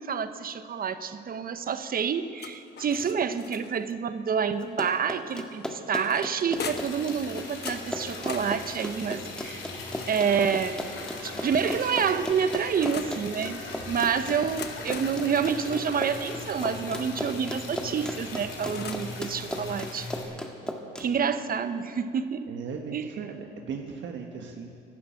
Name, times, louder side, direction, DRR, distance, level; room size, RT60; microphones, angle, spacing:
voice 1, 0.0-9.6 10.1-10.8 11.2-13.6 13.8-20.1 21.0-22.5 22.9-23.1, right 7 dB, 45° right, 11 dB, 0.9 m, -28 dB
sound 1, 2.4-3.9 5.3-7.1 7.6-10.6 11.4-13.2 14.3-16.9 18.0-19.2, left 6 dB, 55° left, 1.1 m, -43 dB
Run, 4.6-21.1, equal, 5° left, 1.6 m, -35 dB
Liquid, 6.6-20.2, left 3 dB, 85° left, 3.4 m, -40 dB
voice 2, 21.0-21.3 22.5-24.7, right 5 dB, 70° right, 2 dB, 1.4 m, -38 dB
12.5 x 12.0 x 9.1 m, 2.5 s
cardioid pair, 90°, 20 cm